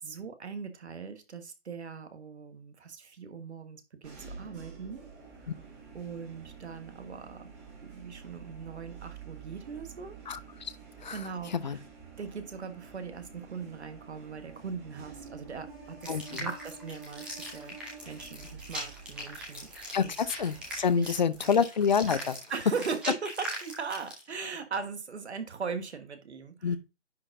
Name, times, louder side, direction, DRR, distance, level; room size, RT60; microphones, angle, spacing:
voice 1, 0.0-5.0 5.4-5.5 5.9-7.5 7.8-10.2 11.1-11.8 12.2-17.8 18.0-20.1 20.9-21.5 22.5-26.8, right 5 dB, 65° right, 1.4 m, -40 dB
sound 1, 4.0-21.5, right 5 dB, 20° right, 1.8 m, -49 dB
voice 2, 10.3-10.7 11.0-11.2 11.5-11.8 16.1-16.5 19.9-22.4 26.6-26.8, left 6 dB, 40° left, 0.5 m, -28 dB
sound 2, 16.0-24.3, right 1 dB, 5° right, 0.7 m, -40 dB
10.0 x 4.4 x 2.6 m
figure-of-eight pair, 150°, 36 cm